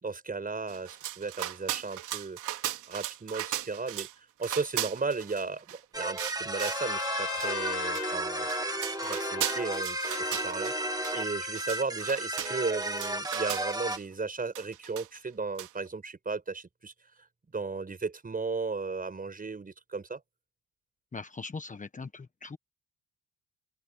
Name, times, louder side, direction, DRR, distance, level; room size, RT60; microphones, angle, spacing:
voice 1, 0.0-2.4 2.9-4.1 4.4-8.5 9.0-16.9 17.5-20.2, right 4 dB, 30° right, 6.1 m, -35 dB
sound 1, 0.7-4.1 4.4-5.8 6.2-6.9 7.4-7.5 8.0-8.1 8.4-10.8 11.0-11.2 11.5-14.0 14.6-15.3 15.6-15.7, right 13 dB, 85° right, 3.9 m, -37 dB
sound 2, 5.9-14.0, right 2 dB, 10° right, 2.0 m, -33 dB
Trumpet, 6.5-11.6, left 13 dB, 75° left, 1.1 m, -39 dB
voice 2, 21.1-22.6, left 4 dB, 25° left, 1.3 m, -40 dB
open air
cardioid pair, 90°, 30 cm